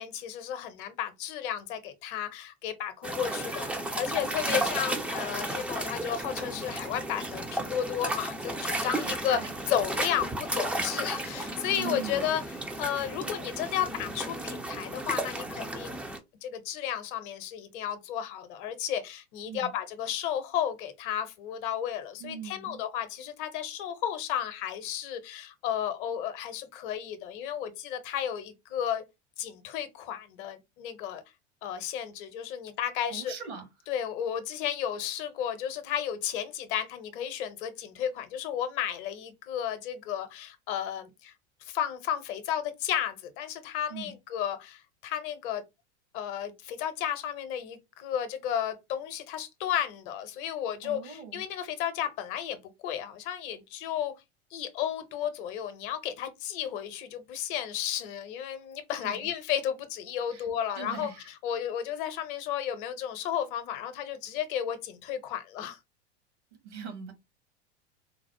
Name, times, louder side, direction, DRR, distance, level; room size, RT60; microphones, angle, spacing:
voice 1, 0.0-9.4 9.7-12.4 12.8-16.0 16.4-29.0 29.4-31.2 31.6-33.3 33.9-41.3 41.6-45.6 46.1-54.1 54.5-65.8, left 9 dB, 45° left, 0.7 m, -33 dB
sound 1, 3.0-16.2, right 1 dB, 5° right, 0.4 m, -33 dB
voice 2, 4.4-4.8 8.9-9.5 11.7-12.4 19.5-19.7 22.2-22.8 33.1-33.6 43.9-44.1 50.8-51.4 59.0-59.3 60.3-60.4 60.7-61.3 66.6-67.1, right 7 dB, 70° right, 1.4 m, -41 dB
3.9 x 2.0 x 2.9 m
figure-of-eight pair, 85°, 35 cm